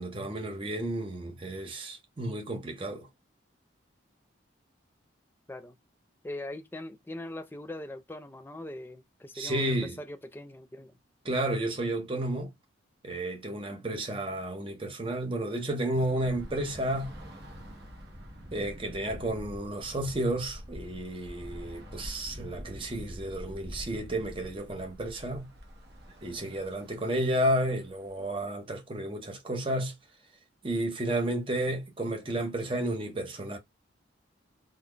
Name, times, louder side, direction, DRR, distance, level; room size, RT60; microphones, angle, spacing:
voice 1, 0.0-3.1 9.3-10.0 11.2-12.5 13.0-17.1 18.5-25.5 26.2-29.9 30.6-33.6, right 1 dB, 25° right, 0.7 m, -32 dB
voice 2, 6.2-11.0 14.3-14.4, left 1 dB, 10° left, 0.3 m, -41 dB
Bus / Traffic noise roadway noise, 16.0-28.5, equal, 55° right, 0.9 m, -46 dB
3.9 x 2.0 x 3.2 m
head